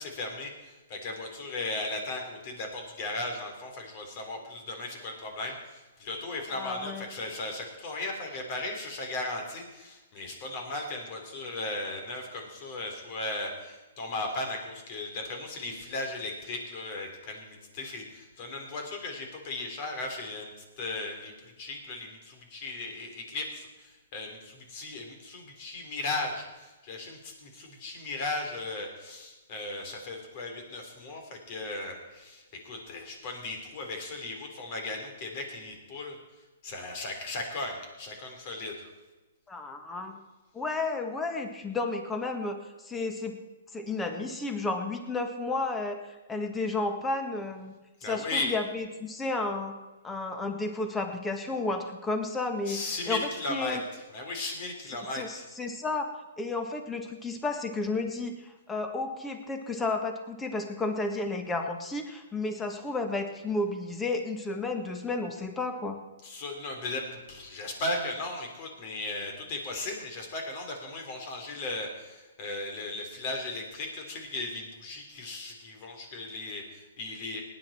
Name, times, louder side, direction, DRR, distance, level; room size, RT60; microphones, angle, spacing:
voice 1, 0.0-36.2 36.6-38.9 48.0-48.5 52.7-55.5 66.2-77.4, left 2 dB, 40° left, 3 dB, 3.7 m, -36 dB
voice 2, 6.5-7.1 39.5-40.2 40.5-43.4 43.7-47.7 48.0-49.7 50.0-52.8 53.1-53.8 55.1-56.0 56.4-66.0, left 3 dB, 10° left, 5 dB, 1.6 m, -32 dB
18.5 x 10.5 x 4.4 m, 1.1 s
hypercardioid pair, 145°, 0 cm